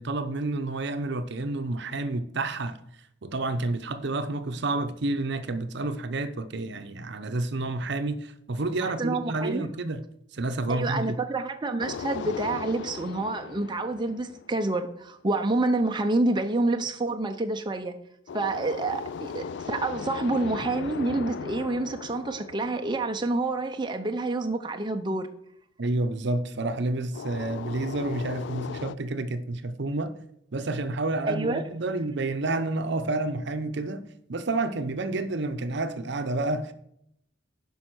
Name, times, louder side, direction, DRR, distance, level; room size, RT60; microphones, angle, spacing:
voice 1, 0.0-2.8 3.2-10.0 10.3-11.2 25.8-30.1 30.5-34.0 34.3-36.7, right 2 dB, 60° right, 0.7 m, -29 dB
voice 2, 8.8-9.7 10.7-17.9 18.3-25.3 31.3-31.6, right 2 dB, 25° right, 0.6 m, -28 dB
sound 1, 11.8-14.9 18.3-23.7 27.1-28.9, left 6 dB, 65° left, 0.3 m, -38 dB
10.0 x 5.5 x 6.1 m
head